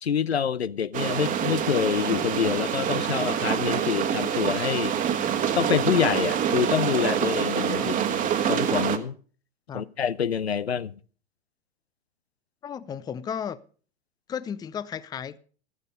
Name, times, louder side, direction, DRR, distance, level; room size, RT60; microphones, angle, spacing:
voice 1, 0.0-5.0 5.5-8.2 8.5-9.1 9.7-11.0, left 7 dB, 85° left, 0.6 m, -26 dB
sound 1, 0.9-9.0, right 8 dB, 25° right, 1.4 m, -26 dB
voice 2, 12.6-13.6 14.3-15.4, left 8 dB, 15° left, 0.5 m, -34 dB
14.0 x 9.6 x 5.3 m
figure-of-eight pair, 105°, 31 cm